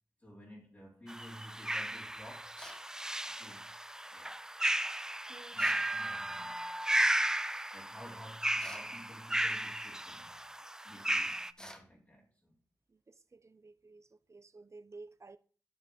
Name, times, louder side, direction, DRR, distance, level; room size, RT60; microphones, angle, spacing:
voice 1, 0.2-2.6 3.4-3.7 4.1-4.3 5.5-6.8 7.7-10.4 10.8-12.6, equal, 30° left, 3.7 m, -53 dB
sound 1, 1.1-11.5, right 1 dB, 10° right, 0.5 m, -34 dB
sound 2, 2.6-2.9 5.6-5.9 8.6-8.9 11.6-11.9, equal, 10° left, 1.5 m, -50 dB
voice 2, 5.3-5.6 12.9-15.4, right 3 dB, 50° right, 0.8 m, -54 dB
12.0 x 6.4 x 4.0 m
wide cardioid pair, 80°, 6 cm